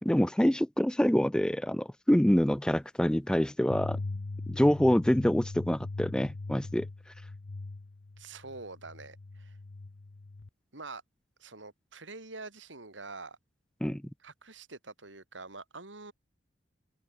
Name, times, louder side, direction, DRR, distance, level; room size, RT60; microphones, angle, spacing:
voice 1, 0.0-4.0 4.5-6.9 13.8-14.0, equal, 5° left, 0.4 m, -26 dB
sound 1, 3.7-10.5, left 2 dB, 65° left, 0.7 m, -40 dB
voice 2, 8.2-9.6 10.7-11.0 11.4-13.4 14.2-16.1, right 3 dB, 90° right, 3.7 m, -45 dB
open air
head